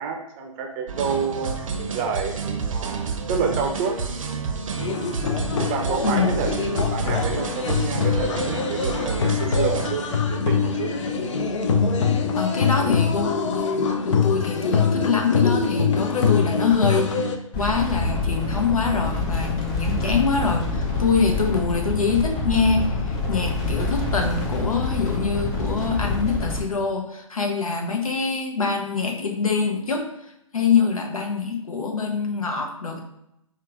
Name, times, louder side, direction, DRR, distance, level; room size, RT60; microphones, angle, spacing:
voice 1, 0.0-1.6 1.9-2.4 2.7-4.0 5.6-6.6 6.9-11.0 19.9-20.1, right 5 dB, 25° right, 3 dB, 0.5 m, -28 dB
sound 1, 0.9-10.0, right 5 dB, 70° right, 0.6 m, -29 dB
sound 2, 4.8-17.4, left 5 dB, 60° left, 0.6 m, -24 dB
voice 2, 6.0-6.3 12.4-17.2 17.5-30.1 30.5-33.0, left 5 dB, 85° left, 3 dB, 0.9 m, -24 dB
sound 3, 17.5-26.6, left 3 dB, 20° left, 0.7 m, -26 dB
4.7 x 2.4 x 3.5 m, 0.83 s
hypercardioid pair, 135°, 17 cm